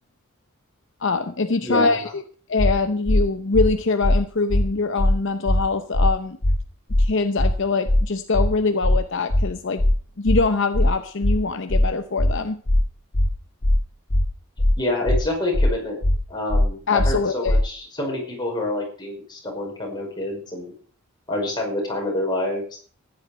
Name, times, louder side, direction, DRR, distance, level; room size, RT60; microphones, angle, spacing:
voice 1, 1.0-2.2 2.5-6.4 7.0-9.8 10.2-12.6 16.9-17.6, left 3 dB, 55° left, 8 dB, 0.8 m, -23 dB
sound 1, 2.6-2.7 3.1-3.2 3.5-3.7 4.0-4.2 4.5-4.7 5.0-5.1 5.5-5.6 5.9-6.1 6.4-6.6 6.9-7.1 7.4-7.5 7.9-8.0 8.3-8.5 8.8-9.0 9.3-9.5 9.8-9.9 10.3-10.4 10.7-10.9 11.2-11.4 11.7-11.9 12.2-12.3 12.7-12.8 13.1-13.3 13.6-13.8 14.1-14.3 14.6-14.7 15.1-15.2 15.5-15.7 16.0-16.2 16.5-16.7 17.0-17.1 17.5-17.6, left 1 dB, 80° left, 1.7 m, -18 dB
voice 2, 14.8-16.0 16.3-20.7 21.3-22.8, left 1 dB, 20° left, -1 dB, 5.4 m, -27 dB
14.5 x 10.5 x 5.1 m, 0.43 s
head